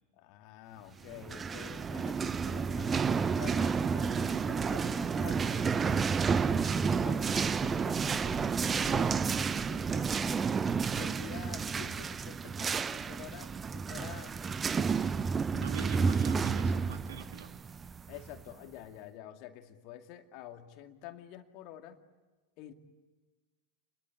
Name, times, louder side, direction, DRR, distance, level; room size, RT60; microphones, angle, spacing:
voice 1, 0.2-9.2 9.7-10.5 10.9-14.4 14.7-15.2 18.1-22.0 22.6-22.7, left 11 dB, 40° left, 6 dB, 2.3 m, -49 dB
sound 1, 1.1-18.5, right 5 dB, 20° right, 0.8 m, -31 dB
voice 2, 15.5-17.6, right 8 dB, 60° right, 8 dB, 2.0 m, -44 dB
29.5 x 22.5 x 8.4 m, 1.3 s
figure-of-eight pair, 90°, 0 cm